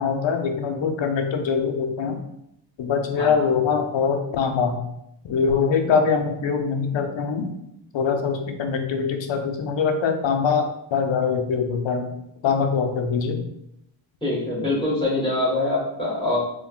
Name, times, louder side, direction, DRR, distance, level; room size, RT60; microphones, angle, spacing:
voice 1, 0.0-2.2 2.8-4.8 5.3-7.5 7.9-12.1 12.4-13.4, left 5 dB, 65° left, 5 dB, 0.5 m, -23 dB
voice 2, 14.2-16.4, left 2 dB, 10° left, -8 dB, 1.4 m, -24 dB
3.3 x 2.1 x 2.4 m, 0.80 s
cardioid pair, 50°, 49 cm